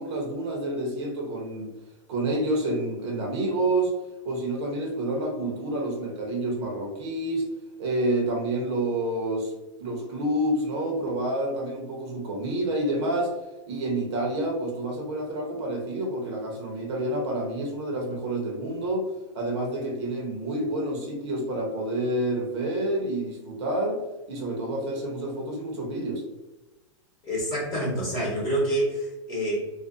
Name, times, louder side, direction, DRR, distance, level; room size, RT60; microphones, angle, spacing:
voice 1, 0.0-1.7 2.1-3.9 4.2-7.5 7.8-9.5 9.8-13.4 13.7-19.1 19.3-24.0 24.3-26.2, right 1 dB, 55° right, 0 dB, 0.8 m, -28 dB
voice 2, 27.2-29.6, right 1 dB, 25° left, -7 dB, 0.8 m, -27 dB
2.5 x 2.2 x 2.4 m, 1.1 s
hypercardioid pair, 145°, 16 cm